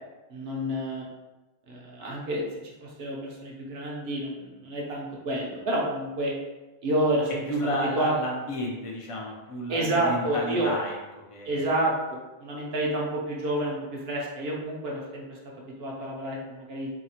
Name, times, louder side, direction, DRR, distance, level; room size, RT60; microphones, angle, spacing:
voice 1, 0.3-1.1 1.7-6.3 6.8-7.4 8.0-8.1 9.7-10.7 11.4-16.9, right 1 dB, 70° right, -3 dB, 0.9 m, -29 dB
voice 2, 7.5-11.7, equal, 45° left, -2 dB, 0.5 m, -32 dB
2.8 x 2.4 x 2.7 m, 1.1 s
omnidirectional pair, 1.1 m